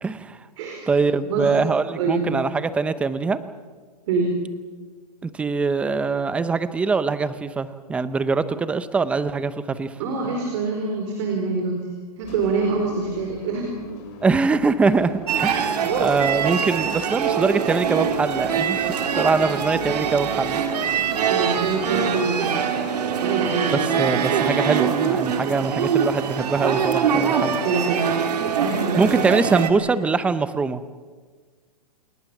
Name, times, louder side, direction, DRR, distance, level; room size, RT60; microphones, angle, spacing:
voice 1, 0.0-0.5 0.9-3.4 5.2-9.9 14.2-20.6 23.7-27.6 29.0-30.8, right 4 dB, 5° right, 13 dB, 0.6 m, -23 dB
voice 2, 0.6-0.9 1.2-1.5 2.0-2.3 4.1-4.3 10.0-11.8 12.2-13.9 21.3-22.6 23.2-23.8 24.8-25.0 27.3-29.2 29.6-30.0, right 4 dB, 45° right, 2 dB, 4.8 m, -26 dB
sound 1, 12.2-21.8, left 4 dB, 35° left, 6.8 m, -42 dB
sound 2, 15.3-29.7, right 7 dB, 70° right, 3.0 m, -23 dB
28.5 x 20.5 x 7.2 m, 1.5 s
hypercardioid pair, 160°, 21 cm